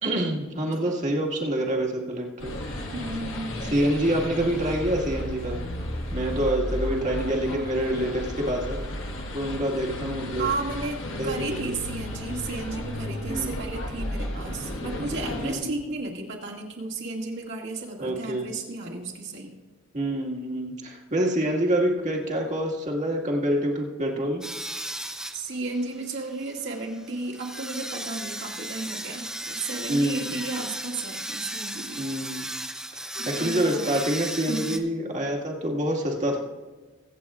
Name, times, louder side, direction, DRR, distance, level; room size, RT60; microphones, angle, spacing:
voice 1, 0.0-2.5 3.7-5.6 6.1-8.8 9.3-10.5 11.2-11.8 13.3-13.5 15.4-15.7 18.0-18.5 19.9-24.4 29.9-30.4 32.0-32.4 32.9-36.4, right 1 dB, 35° right, 0 dB, 1.8 m, -26 dB
sound 1, 2.4-15.5, left 1 dB, 65° left, 1.8 m, -33 dB
voice 2, 2.9-3.8 10.4-19.5 25.3-32.0 33.1-33.9 34.5-34.8, right 3 dB, 60° right, -1 dB, 2.1 m, -33 dB
sound 2, 24.4-34.8, right 1 dB, 5° right, 0.6 m, -36 dB
23.5 x 8.4 x 2.4 m, 1.3 s
head